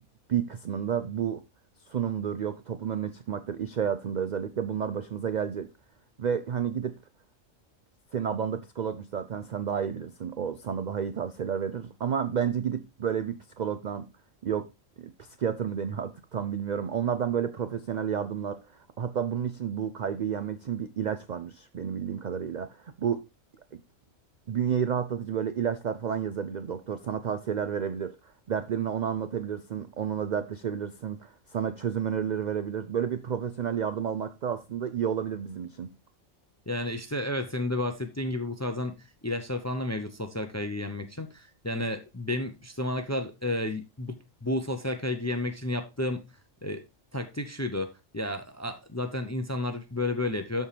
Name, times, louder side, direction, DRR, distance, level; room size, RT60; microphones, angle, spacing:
voice 1, 0.3-1.4 1.9-5.7 6.2-7.0 8.1-14.1 14.4-14.7 15.0-23.2 23.7-23.8 24.5-35.9, right 8 dB, 60° right, 0.4 m, -31 dB
voice 2, 36.7-46.3 46.6-46.8 47.1-50.7, left 1 dB, 20° left, 0.5 m, -32 dB
13.0 x 4.5 x 3.3 m
omnidirectional pair, 1.3 m